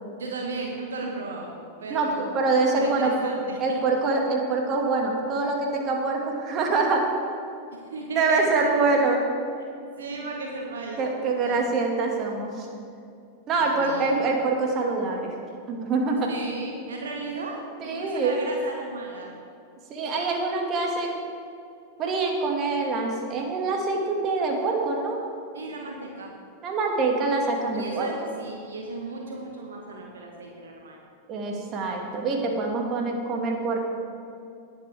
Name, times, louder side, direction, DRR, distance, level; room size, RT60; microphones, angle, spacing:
voice 1, 0.2-1.5 1.8-2.3 2.8-3.8 7.7-8.8 10.0-11.0 11.4-11.7 13.6-14.1 16.3-19.3 25.5-26.3 27.7-31.0, right 3 dB, 65° right, 0 dB, 1.2 m, -35 dB
voice 2, 1.9-3.3 3.6-7.1 8.1-9.2 11.0-12.7 13.5-15.4 15.7-16.3 17.8-18.4 19.9-21.2 22.0-25.2 26.6-28.1 31.3-33.8, right 3 dB, 30° right, 1 dB, 1.9 m, -25 dB
18.5 x 7.8 x 3.5 m, 2.6 s
figure-of-eight pair, 90°, 0 cm